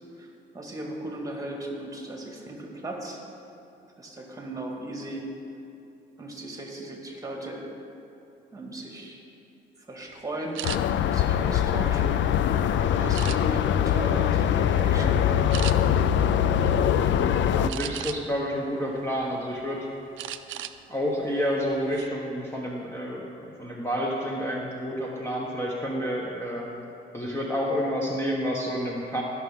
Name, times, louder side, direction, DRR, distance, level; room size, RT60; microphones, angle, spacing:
voice 1, 0.5-3.2 4.0-5.2 6.2-7.7 8.5-9.2 9.8-10.6 11.1-15.9, right 1 dB, 15° right, 0 dB, 1.8 m, -37 dB
sound 1, 10.5-10.8 11.4-12.4 13.1-13.7 14.3-14.5 14.8-15.0 15.5-15.7 17.7-18.4 18.9-19.6 20.2-20.8 21.1-21.3 21.7-22.1, right 13 dB, 75° right, 0.4 m, -36 dB
sound 2, 10.6-17.7, left 9 dB, 70° left, 0.4 m, -23 dB
voice 2, 17.1-19.9 20.5-20.6 20.9-26.7 27.1-29.2, equal, 10° left, -3 dB, 1.1 m, -29 dB
15.5 x 6.0 x 3.6 m, 2.7 s
cardioid pair, 90°, 20 cm